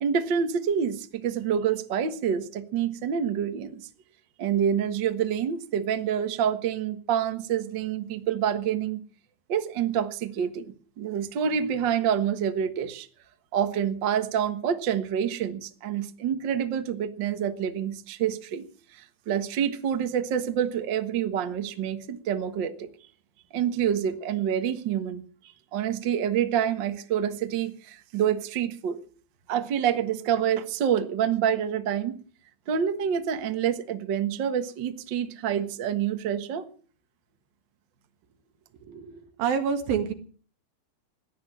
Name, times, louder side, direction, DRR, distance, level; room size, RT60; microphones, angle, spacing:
voice 1, 0.0-3.8 4.4-9.0 9.5-13.1 13.5-18.6 18.9-22.9 23.5-29.0 29.5-32.2 32.7-36.6, right 8 dB, 55° right, 9 dB, 1.3 m, -27 dB
voice 2, 38.8-40.1, right 7 dB, 80° right, 7 dB, 3.7 m, -28 dB
17.0 x 10.5 x 7.7 m, 0.43 s
omnidirectional pair, 4.1 m